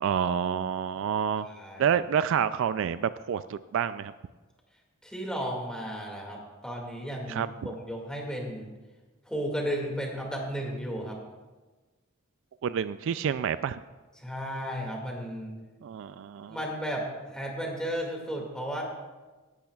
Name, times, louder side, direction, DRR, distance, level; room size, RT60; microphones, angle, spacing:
voice 1, 0.0-1.5 1.8-4.1 7.3-7.7 12.6-13.8 15.8-16.6, right 8 dB, 60° right, 14 dB, 0.3 m, -28 dB
voice 2, 1.4-1.9 5.0-8.7 9.3-11.2 14.2-15.6 16.5-18.8, equal, 5° left, -1 dB, 2.1 m, -34 dB
17.0 x 12.0 x 2.4 m, 1.2 s
head